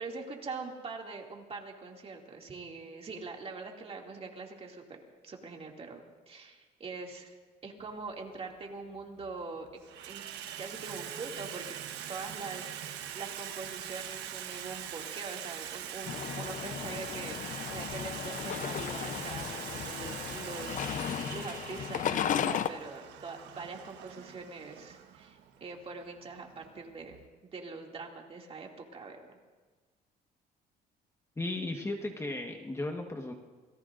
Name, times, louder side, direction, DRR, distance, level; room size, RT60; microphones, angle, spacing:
voice 1, 0.0-6.0 6.3-7.3 7.6-9.8 10.1-10.2 10.6-11.7 12.1-29.2, right 4 dB, 35° right, 1 dB, 2.5 m, -43 dB
Water tap faucet / Sink (filling or washing), 7.9-8.0 8.9-9.4 9.7-27.3, right 10 dB, 90° right, 1.3 m, -43 dB
sound 1, 16.1-22.7, left 9 dB, 50° left, 0.7 m, -35 dB
voice 2, 31.4-33.3, left 2 dB, 15° left, 2 dB, 1.4 m, -35 dB
28.5 x 18.5 x 2.6 m, 1.4 s
cardioid pair, 110°, 17 cm